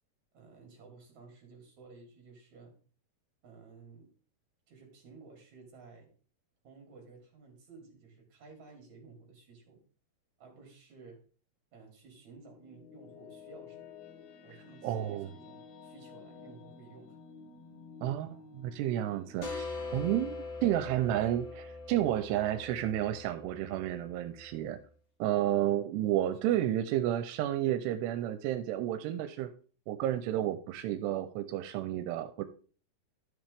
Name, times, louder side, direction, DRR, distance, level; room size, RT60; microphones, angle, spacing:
voice 1, 0.3-2.7 3.4-4.1 4.7-6.1 6.6-9.8 10.4-11.2 11.7-13.9 14.4-17.2 19.1-19.3 20.1-20.3 26.5-26.7, right 4 dB, 45° right, 1 dB, 4.2 m, -54 dB
sound 1, 12.1-23.4, left 5 dB, 80° left, 3.0 m, -53 dB
voice 2, 14.8-15.3 18.0-19.7 19.9-20.4 20.6-24.8 25.2-29.5 29.9-32.4, right 12 dB, 85° right, 10 dB, 2.7 m, -31 dB
sound 2, 19.4-24.9, left 3 dB, 45° left, 2.8 m, -42 dB
12.5 x 7.3 x 3.5 m, 0.41 s
omnidirectional pair, 4.7 m